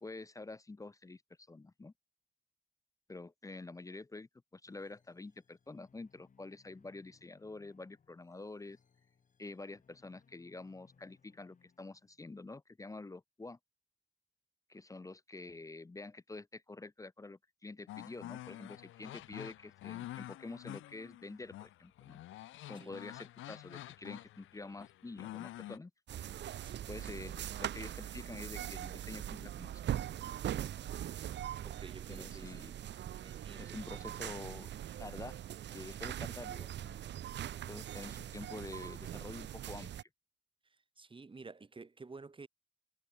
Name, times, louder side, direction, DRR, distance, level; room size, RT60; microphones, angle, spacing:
voice 1, 0.0-1.2 1.5-1.9 3.1-8.8 9.4-13.6 14.7-22.2 22.7-25.9 26.6-30.0 32.1-32.7 33.6-34.7 35.0-35.4 35.7-37.0 37.7-40.1, left 3 dB, 15° left, 0.7 m, -48 dB
sound 1, 4.6-12.3, left 6 dB, 40° left, 4.0 m, -69 dB
sound 2, 17.9-25.8, left 15 dB, 80° left, 0.7 m, -48 dB
sound 3, 26.1-40.0, right 11 dB, 60° right, 1.0 m, -41 dB
voice 2, 26.6-26.9 31.6-32.8 33.2-34.2 40.6-42.5, right 4 dB, 25° right, 3.9 m, -52 dB
cardioid pair, 90°, 20 cm